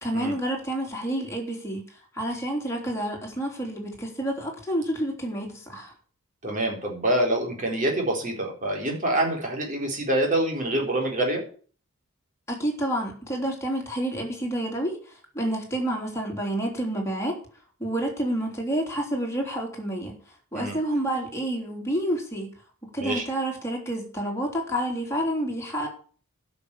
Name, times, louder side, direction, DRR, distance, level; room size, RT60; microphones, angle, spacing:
voice 1, 0.0-1.8 2.1-5.9 12.5-17.4 17.8-20.2 20.5-22.5 22.9-25.9, right 1 dB, 10° left, -1 dB, 3.4 m, -29 dB
voice 2, 6.4-11.4 20.5-20.8 23.0-23.2, right 1 dB, 35° right, 0 dB, 3.8 m, -26 dB
11.5 x 6.3 x 8.3 m, 0.42 s
head